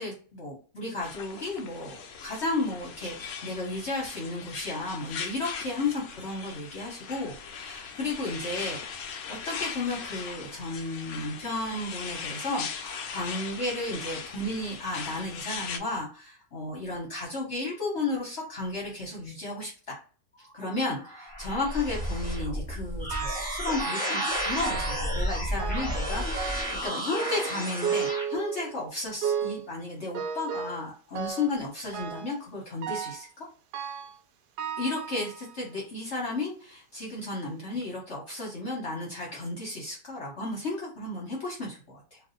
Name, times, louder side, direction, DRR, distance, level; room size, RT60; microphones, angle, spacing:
voice 1, 0.0-20.0 20.5-33.5 34.8-42.2, left 2 dB, 50° left, -3 dB, 1.0 m, -33 dB
sound 1, 1.0-15.8, left 6 dB, 75° left, 0.7 m, -39 dB
sound 2, 20.6-28.2, equal, 5° left, 0.7 m, -32 dB
sound 3, 23.1-23.5 23.8-25.1 25.6-26.0 26.3-26.8 27.1-28.8 29.2-29.7 30.1-30.8 31.2-31.6 31.9-32.4 32.8-33.3 33.7-34.2 34.6-35.6 36.3-36.4 37.2-37.3 37.7-37.8, right 7 dB, 75° right, 1.1 m, -34 dB
2.6 x 2.6 x 3.8 m, 0.38 s
omnidirectional pair, 1.9 m